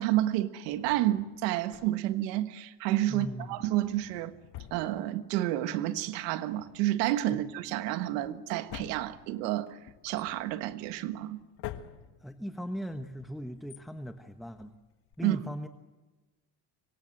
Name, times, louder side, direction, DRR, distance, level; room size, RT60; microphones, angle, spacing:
voice 1, 0.0-4.4 4.7-9.8 10.0-11.4 15.2-15.4, right 14 dB, 85° right, 1.6 m, -30 dB
Drawer open or close, 0.7-2.2 3.1-5.6 5.8-5.9 6.4-15.2, left 12 dB, 55° left, 1.8 m, -49 dB
voice 2, 3.1-3.6 7.3-7.4 12.2-14.7 15.2-15.7, equal, ahead, 1.2 m, -38 dB
25.5 x 23.0 x 7.8 m
supercardioid pair, 115°, 47 cm